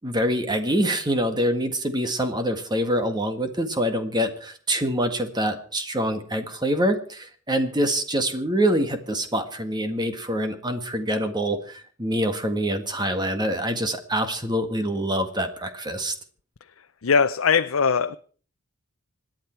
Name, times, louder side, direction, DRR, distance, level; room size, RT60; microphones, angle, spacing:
voice 1, 0.0-16.1, equal, 20° right, 1.8 m, -25 dB
voice 2, 17.0-18.2, left 6 dB, 80° left, 0.6 m, -20 dB
26.5 x 10.5 x 4.6 m
head